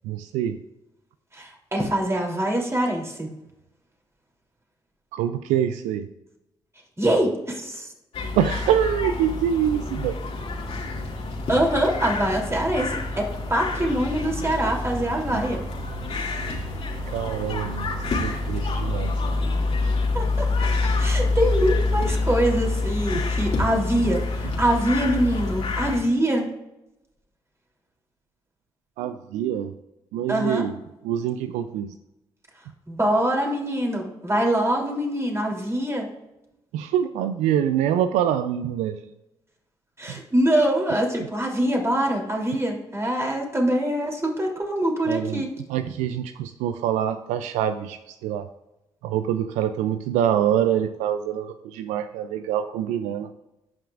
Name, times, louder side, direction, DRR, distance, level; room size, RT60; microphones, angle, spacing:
voice 1, 0.0-0.6 5.1-6.1 8.3-10.2 14.4-14.5 15.3-15.5 17.0-19.2 23.1-23.2 29.0-29.7 30.1-32.0 36.7-39.0 40.1-40.2 45.1-48.5 49.0-53.3, right 10 dB, 80° right, 11 dB, 0.4 m, -25 dB
voice 2, 1.3-3.3 7.0-7.9 11.5-15.6 20.1-20.5 21.0-26.5 30.3-30.6 32.9-36.1 40.0-45.5, right 1 dB, 20° right, 0 dB, 3.1 m, -24 dB
sound 1, 8.1-26.0, left 3 dB, 60° left, 2.4 m, -27 dB
15.0 x 6.0 x 2.5 m, 0.93 s
hypercardioid pair, 50°, 12 cm